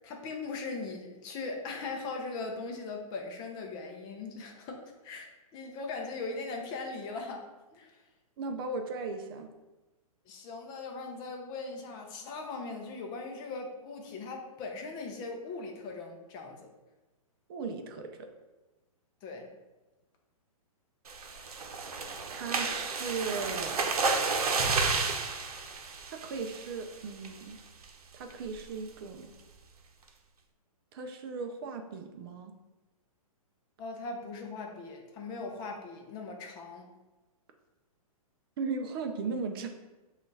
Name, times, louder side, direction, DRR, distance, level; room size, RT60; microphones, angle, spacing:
voice 1, 0.0-5.3 5.5-7.4 7.7-8.0 10.3-16.7 19.2-19.5 33.8-36.9, left 3 dB, 25° left, 2 dB, 0.5 m, -39 dB
voice 2, 8.4-9.5 17.5-18.2 22.3-23.8 26.1-27.6 28.1-29.3 30.9-32.5 38.6-39.7, right 4 dB, 40° right, 5 dB, 0.5 m, -37 dB
sound 1, 21.1-26.8 27.2-27.5 27.8-27.9 28.3-28.6, right 4 dB, 90° right, 0.7 m, -31 dB
6.4 x 2.4 x 3.2 m, 1.1 s
hypercardioid pair, 145°, 19 cm